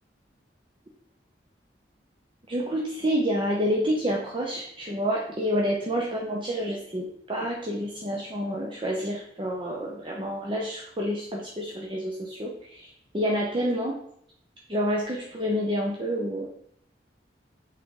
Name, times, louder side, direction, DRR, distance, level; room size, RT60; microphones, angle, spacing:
voice 1, 2.5-12.9 13.1-13.9 14.7-16.5, equal, 30° right, -2 dB, 0.8 m, -28 dB
6.0 x 4.1 x 3.8 m, 0.69 s
head